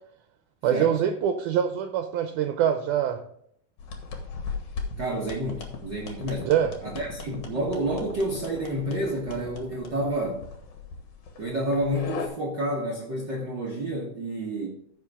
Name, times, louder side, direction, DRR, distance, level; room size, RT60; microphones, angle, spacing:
voice 1, 0.6-3.2 6.5-6.7, right 9 dB, 80° right, 6 dB, 2.1 m, -24 dB
sound 1, 3.8-12.3, left 4 dB, 70° left, 2.6 m, -38 dB
voice 2, 5.0-6.5 6.8-10.4 11.4-14.7, right 1 dB, 50° right, -3 dB, 1.4 m, -29 dB
15.0 x 5.2 x 3.5 m, 0.68 s
omnidirectional pair, 3.6 m